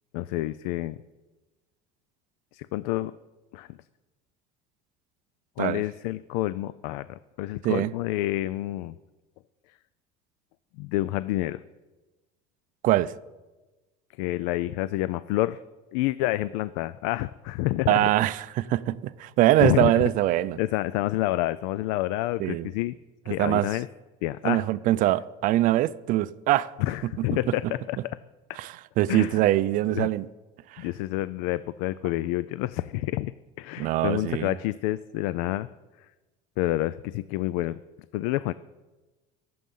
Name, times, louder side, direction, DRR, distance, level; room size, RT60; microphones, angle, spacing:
voice 1, 0.1-1.0 2.5-3.1 3.5-3.7 5.6-8.9 10.8-11.6 14.2-15.6 15.9-18.1 19.6-20.0 20.6-23.0 23.3-23.9 24.2-24.6 26.8-28.0 29.1-29.4 29.9-30.1 30.8-33.3 33.6-35.7 36.6-37.8 38.1-38.5, left 16 dB, 85° left, 0.4 m, -28 dB
voice 2, 17.9-20.6 22.4-22.7 23.3-23.7 24.4-26.7 27.0-27.4 28.6-30.3 30.7-30.8 33.8-34.5, right 15 dB, 50° right, 0.5 m, -23 dB
22.5 x 7.8 x 5.5 m
cardioid pair, 155°, 18 cm